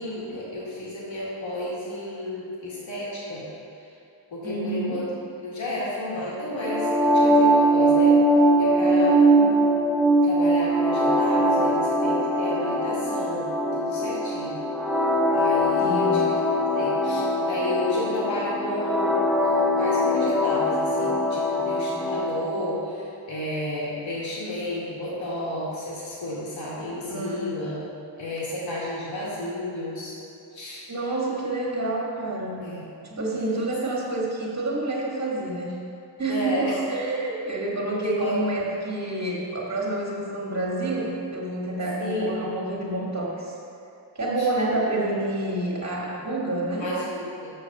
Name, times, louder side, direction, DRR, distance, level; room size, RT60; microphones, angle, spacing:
voice 1, 0.0-3.4 4.3-5.1 5.4-8.2 8.6-9.5 10.2-13.5 13.8-14.6 15.3-16.3 16.7-27.8 28.2-30.2 30.5-30.8 32.6-32.8 36.3-36.7 38.2-38.3 42.0-42.4 44.4-44.5 46.8-47.5, left 1 dB, 80° left, -7 dB, 2.1 m, -32 dB
voice 2, 4.4-5.0 15.8-16.2 27.1-27.5 30.9-32.6 33.0-35.8 36.2-43.5 44.1-47.0, right 2 dB, 35° right, -3 dB, 1.8 m, -28 dB
sound 1, 6.6-22.5, equal, ahead, 0.7 m, -21 dB
6.6 x 6.5 x 6.6 m, 2.7 s
wide cardioid pair, 110°, 46 cm